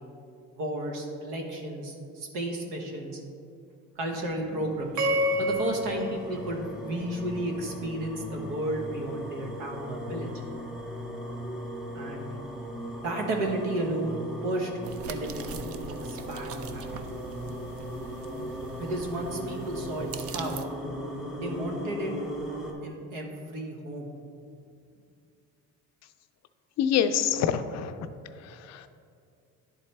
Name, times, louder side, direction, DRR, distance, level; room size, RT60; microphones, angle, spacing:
voice 1, 0.5-3.2 3.9-5.1 5.4-10.3 11.9-12.4 13.0-14.7 15.1-17.0 18.8-20.7 21.4-22.1 22.8-24.1, right 1 dB, 80° right, 2 dB, 1.2 m, -33 dB
sound 1, 4.2-22.7, equal, ahead, 0.9 m, -38 dB
sound 2, 5.0-7.3, equal, 65° right, 1.0 m, -30 dB
sound 3, 14.8-20.6, right 5 dB, 45° right, 0.5 m, -43 dB
voice 2, 26.8-28.1 28.4-28.9, left 8 dB, 55° left, 10 dB, 0.4 m, -26 dB
10.5 x 4.1 x 3.3 m, 2.4 s
cardioid pair, 120°, 32 cm